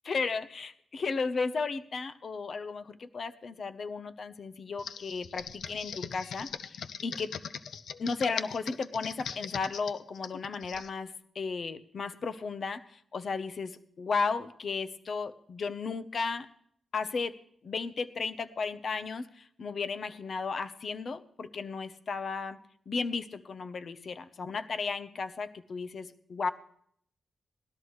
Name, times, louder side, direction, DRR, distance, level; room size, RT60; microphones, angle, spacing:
voice 1, 0.1-6.5 7.0-7.3 8.0-12.8 13.1-16.5 16.9-17.3 17.6-22.6 22.9-26.5, left 4 dB, 55° left, 10 dB, 0.8 m, -34 dB
Computer keyboard, 4.8-10.9, left 7 dB, 85° left, 0.6 m, -40 dB
18.5 x 13.0 x 3.2 m, 0.64 s
cardioid pair, 95°, 0 cm